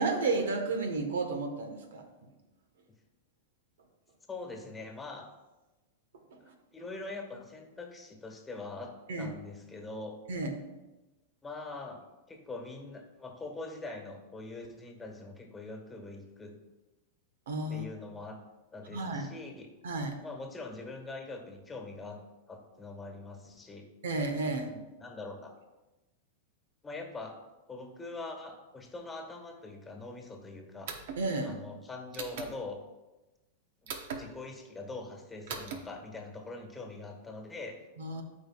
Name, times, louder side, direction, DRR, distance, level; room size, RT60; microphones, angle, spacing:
voice 1, 0.0-2.0 9.1-9.3 10.3-10.6 17.5-17.9 18.9-19.3 19.8-20.2 24.0-24.7 31.2-31.5 38.0-38.2, right 3 dB, 85° right, 5 dB, 1.3 m, -32 dB
voice 2, 4.3-5.3 6.7-10.2 11.4-12.0 12.3-16.5 17.7-18.4 18.7-19.7 20.2-22.2 22.5-23.9 24.6-25.5 26.8-27.4 27.7-30.9 31.4-32.8 33.8-37.9, left 3 dB, 15° left, 3 dB, 1.4 m, -43 dB
sound 1, 30.9-31.2 32.1-32.5 33.9-34.2 35.5-35.8, right 6 dB, 65° right, 1.0 m, -38 dB
13.0 x 5.1 x 2.4 m, 1.1 s
hypercardioid pair, 120°, 0 cm